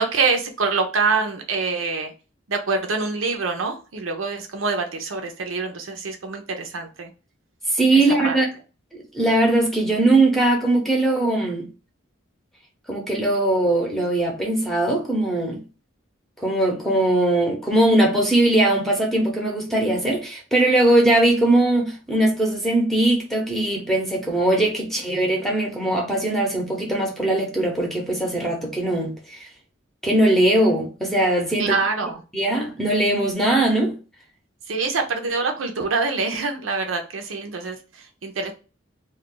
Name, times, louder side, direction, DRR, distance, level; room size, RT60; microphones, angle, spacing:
voice 1, 0.0-2.1 2.5-7.1 7.9-8.4 31.6-32.2 34.7-38.5, right 4 dB, 90° right, 0.6 m, -25 dB
voice 2, 7.7-8.5 8.9-11.7 12.9-15.6 16.4-29.4 30.0-31.8 32.3-33.9, right 1 dB, ahead, 0.7 m, -20 dB
2.4 x 2.2 x 3.7 m
head